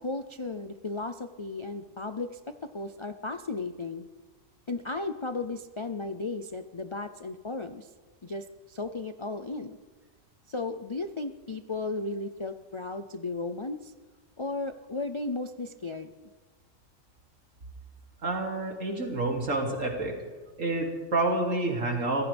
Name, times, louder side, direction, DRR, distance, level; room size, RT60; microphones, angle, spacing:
voice 1, 0.0-4.1 4.7-7.9 8.2-9.8 10.5-13.9 14.4-16.1, left 3 dB, 45° left, 9 dB, 0.4 m, -35 dB
voice 2, 18.2-20.2 20.6-22.2, right 2 dB, 70° right, 1 dB, 3.0 m, -28 dB
25.5 x 15.5 x 3.5 m, 1.4 s
omnidirectional pair, 1.4 m